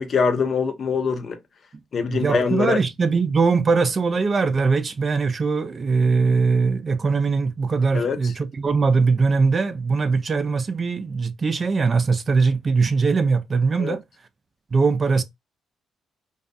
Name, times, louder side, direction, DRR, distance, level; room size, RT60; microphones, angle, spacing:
voice 1, 0.0-1.4 1.9-2.8 7.9-8.3 13.8-14.0, left 5 dB, 50° left, 0.6 m, -23 dB
voice 2, 2.1-14.0 14.7-15.2, right 4 dB, 35° right, 0.4 m, -21 dB
2.3 x 2.2 x 2.5 m
cardioid pair, 90°, 0 cm